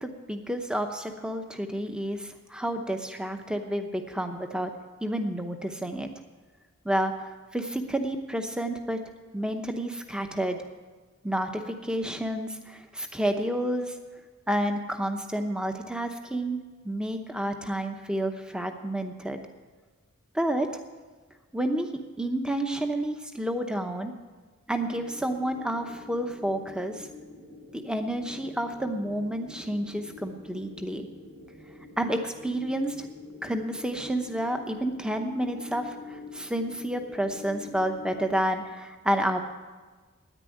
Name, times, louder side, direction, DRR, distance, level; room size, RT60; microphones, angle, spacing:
voice 1, 0.0-4.7 5.0-6.1 6.8-9.0 9.3-10.6 11.2-13.9 14.5-16.6 16.8-19.4 20.3-20.7 21.5-21.9 22.2-24.1 24.7-27.0 27.7-31.1 32.0-33.1 33.4-35.9 36.3-39.4, right 1 dB, 5° right, 6 dB, 0.8 m, -30 dB
sound 1, 24.8-38.3, left 3 dB, 50° right, 4.6 m, -46 dB
10.0 x 9.6 x 9.2 m, 1.4 s
head